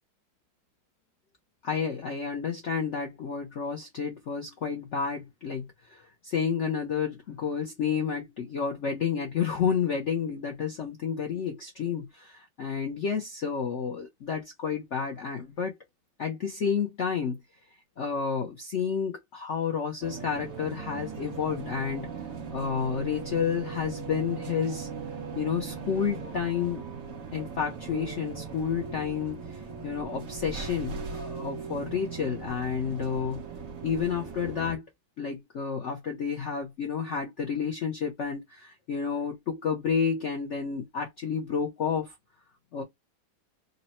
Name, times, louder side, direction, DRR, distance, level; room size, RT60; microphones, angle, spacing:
voice 1, 1.6-15.8 16.2-17.4 18.0-22.1 22.5-24.9 25.4-26.8 27.3-33.4 33.8-34.9 35.2-42.1 42.7-42.8, left 6 dB, 80° left, 0.6 m, -30 dB
sound 1, 20.0-34.8, right 5 dB, 50° right, 1.1 m, -39 dB
3.9 x 2.1 x 4.2 m
omnidirectional pair, 2.2 m